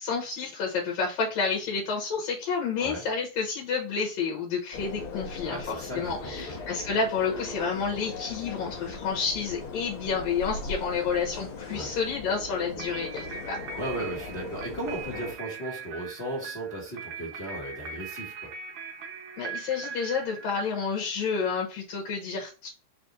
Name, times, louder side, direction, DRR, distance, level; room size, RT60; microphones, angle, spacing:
voice 1, 0.0-13.6 19.4-22.7, left 5 dB, 75° left, -1 dB, 2.2 m, -30 dB
sound 1, 4.7-15.3, left 4 dB, 60° left, 1.5 m, -39 dB
voice 2, 5.5-6.5 11.7-11.9 13.7-18.5, right 1 dB, 35° left, -4 dB, 1.1 m, -36 dB
sound 2, 12.8-21.1, right 5 dB, 65° right, 1.4 m, -41 dB
4.7 x 2.5 x 3.8 m, 0.33 s
omnidirectional pair, 3.3 m